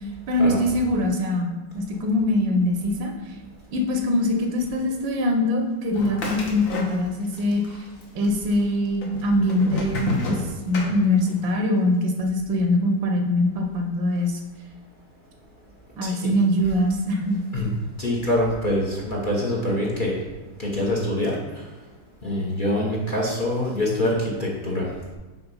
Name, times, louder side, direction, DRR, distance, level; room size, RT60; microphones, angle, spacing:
voice 1, 0.3-3.3 3.7-7.8 8.1-14.4 16.0-17.4, left 1 dB, 80° right, 2 dB, 1.6 m, -23 dB
sound 1, 5.9-7.4 7.6-8.4 9.0-11.5, left 3 dB, 50° left, 1.2 m, -30 dB
voice 2, 18.0-20.1 20.6-21.6 22.2-24.9, left 1 dB, 35° left, -4 dB, 1.0 m, -25 dB
6.0 x 4.2 x 5.4 m, 1.2 s
omnidirectional pair, 2.0 m